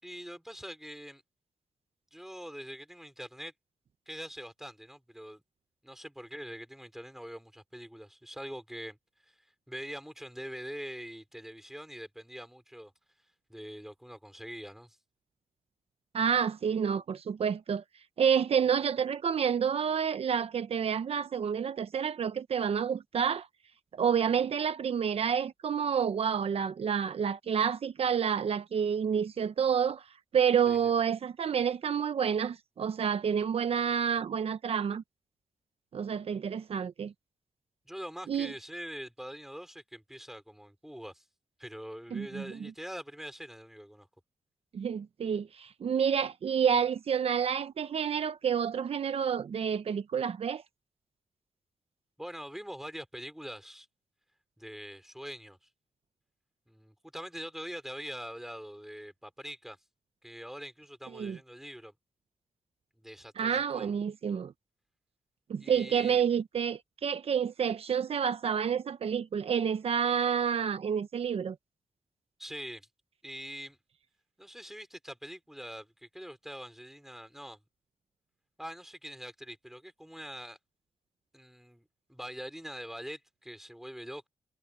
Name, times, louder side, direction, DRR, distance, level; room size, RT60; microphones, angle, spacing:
voice 1, 0.0-1.2 2.1-3.5 4.1-5.4 5.8-9.0 9.2-12.9 13.5-15.0 30.7-30.8 37.8-41.2 41.6-44.1 52.2-53.9 54.6-55.7 56.7-59.8 60.2-61.9 63.0-63.9 65.6-66.2 72.4-72.9 73.2-73.8 74.4-77.6 78.6-80.6 81.3-84.3, equal, 5° right, 4.3 m, -44 dB
voice 2, 16.1-17.8 18.2-23.5 23.9-30.0 30.3-35.0 35.9-37.1 38.3-38.5 42.1-42.6 44.7-50.6 61.1-61.4 63.4-64.5 65.5-71.5, right 7 dB, 65° right, 0.9 m, -29 dB
cardioid pair, 55°, 11 cm